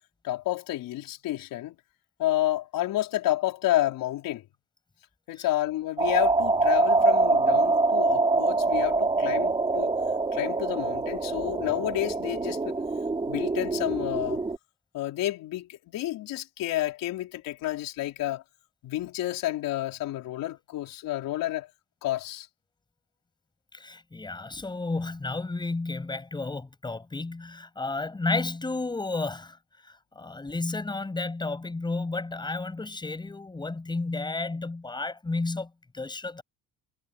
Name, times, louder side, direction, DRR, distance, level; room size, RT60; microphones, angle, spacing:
voice 1, 0.2-1.8 2.2-4.4 5.3-9.9 10.3-12.8 13.3-14.4 14.9-18.4 18.8-21.7 22.0-22.5, left 14 dB, 60° left, 4.3 m, -30 dB
sound 1, 6.0-14.6, right 3 dB, 15° right, 4.2 m, -25 dB
voice 2, 23.7-29.6 29.8-36.4, left 3 dB, 10° left, 7.4 m, -32 dB
cardioid pair, 160°, 37 cm